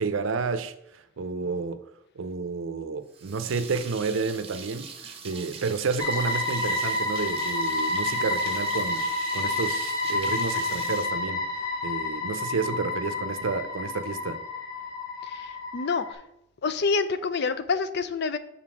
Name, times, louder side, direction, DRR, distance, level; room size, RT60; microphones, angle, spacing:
voice 1, 0.0-1.8 2.2-9.1 9.3-11.4 11.8-14.4, right 4 dB, 80° right, 0.5 m, -30 dB
sound 1, 3.1-11.9, right 6 dB, 30° right, 0.8 m, -43 dB
sound 2, 6.0-16.1, left 2 dB, 20° left, 1.2 m, -29 dB
voice 2, 15.2-16.2 16.6-18.4, left 4 dB, 55° left, 0.5 m, -27 dB
5.8 x 4.0 x 6.1 m
head